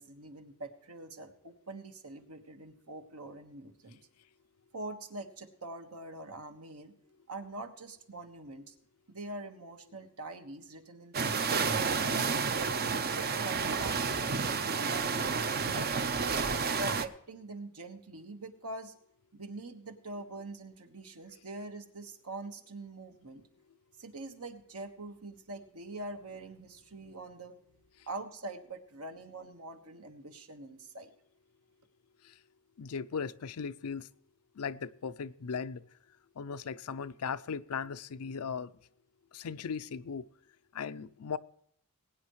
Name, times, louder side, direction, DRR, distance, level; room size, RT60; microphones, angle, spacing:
voice 1, 0.0-4.0 4.7-6.9 7.3-8.7 9.1-11.6 12.1-15.2 15.7-16.4 16.8-18.9 19.3-23.4 24.0-27.6 28.1-31.1, right 2 dB, 75° right, 1.5 m, -44 dB
sound 1, 11.1-17.1, right 5 dB, 45° right, 0.7 m, -30 dB
voice 2, 32.8-34.1 34.6-35.8 36.4-38.7 39.3-40.3 40.7-41.4, left 6 dB, 75° left, 0.5 m, -37 dB
21.5 x 9.5 x 3.1 m
head